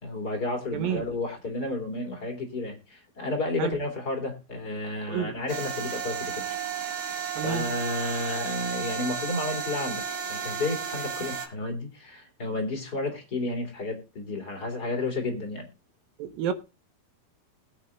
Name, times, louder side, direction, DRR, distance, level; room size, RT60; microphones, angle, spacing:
voice 1, 0.0-6.4 7.4-10.0 10.3-15.7, left 2 dB, 25° left, 2.8 m, -32 dB
voice 2, 0.7-1.1 3.6-3.8 5.1-5.4 7.4-7.7 16.2-16.5, right 8 dB, 70° right, 2.7 m, -30 dB
sound 1, 5.5-11.5, right 7 dB, 50° right, 2.8 m, -33 dB
20.5 x 8.6 x 2.4 m
omnidirectional pair, 4.5 m